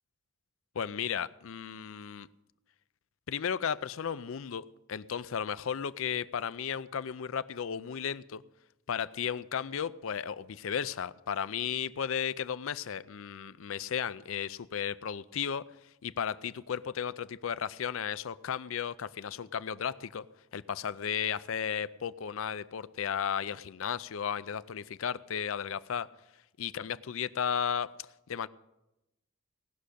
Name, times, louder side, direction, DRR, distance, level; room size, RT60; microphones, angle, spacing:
voice 1, 0.7-2.3 3.3-8.4 8.9-15.6 16.0-20.3 20.5-26.1 26.6-27.9 28.3-28.5, left 7 dB, 70° left, 16 dB, 0.5 m, -34 dB
18.5 x 6.4 x 8.3 m, 0.94 s
head